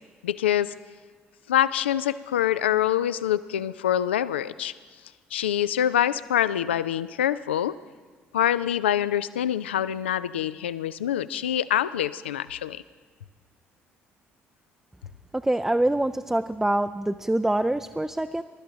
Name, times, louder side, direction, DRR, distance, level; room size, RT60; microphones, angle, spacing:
voice 1, 0.2-0.7 1.5-4.7 5.3-7.8 8.3-12.8, left 11 dB, 75° left, 16 dB, 0.4 m, -25 dB
voice 2, 15.3-18.4, right 1 dB, 5° right, 9 dB, 0.4 m, -25 dB
22.0 x 12.0 x 3.9 m, 1.5 s
figure-of-eight pair, 50°, 6 cm